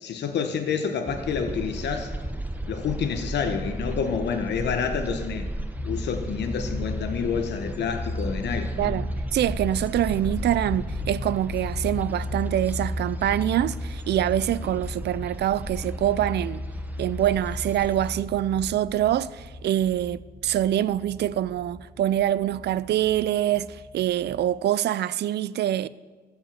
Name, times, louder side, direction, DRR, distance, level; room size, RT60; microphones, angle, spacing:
voice 1, 0.0-2.1 2.7-5.5 5.8-9.0, left 6 dB, 85° left, 1.0 m, -28 dB
sound 1, 1.1-18.2, right 1 dB, 10° right, 0.8 m, -36 dB
sound 2, 5.7-24.4, left 1 dB, 35° left, 2.1 m, -35 dB
voice 2, 8.8-16.6 17.0-25.9, right 12 dB, 75° right, 0.4 m, -25 dB
14.0 x 5.3 x 7.4 m
cardioid pair, 115°, 17 cm